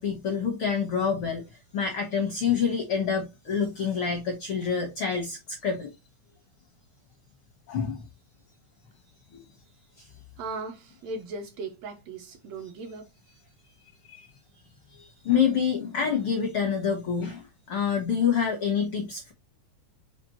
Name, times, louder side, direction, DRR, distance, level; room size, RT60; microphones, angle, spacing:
voice 1, 0.0-5.9 7.7-8.0 9.3-9.4 10.0-10.1 14.1-14.3 15.0-19.3, left 7 dB, 75° left, 1.2 m, -27 dB
voice 2, 10.4-13.1, right 3 dB, 75° right, 1.7 m, -37 dB
5.8 x 2.9 x 2.8 m
omnidirectional pair, 3.5 m